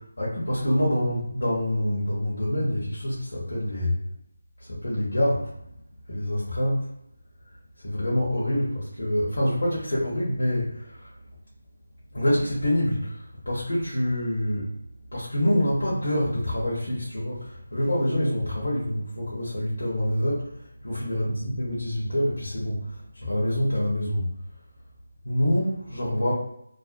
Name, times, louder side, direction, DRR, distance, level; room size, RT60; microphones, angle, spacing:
voice 1, 0.2-4.0 4.6-5.6 6.1-6.9 7.8-11.1 12.1-14.8 15.1-24.3 25.2-26.3, equal, 70° left, -7 dB, 0.8 m, -26 dB
2.5 x 2.1 x 2.5 m, 0.75 s
figure-of-eight pair, 160°, 0 cm